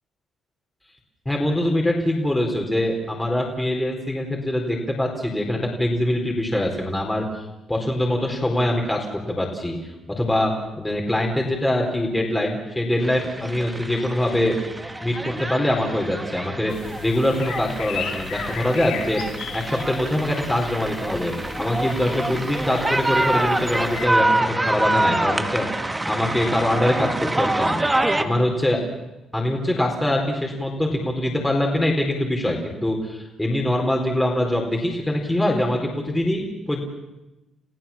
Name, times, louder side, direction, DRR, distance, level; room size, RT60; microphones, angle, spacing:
voice 1, 1.3-7.2 7.7-9.7 10.2-14.6 15.0-16.7 17.0-19.2 19.5-27.8 28.2-28.8 29.3-36.8, left 1 dB, 10° left, 0 dB, 4.3 m, -23 dB
sound 1, 13.0-28.2, right 2 dB, 15° right, 1.6 m, -26 dB
sound 2, 16.7-24.1, left 8 dB, 85° left, 2.0 m, -36 dB
30.0 x 15.0 x 7.3 m, 0.97 s
cardioid pair, 90°, 0 cm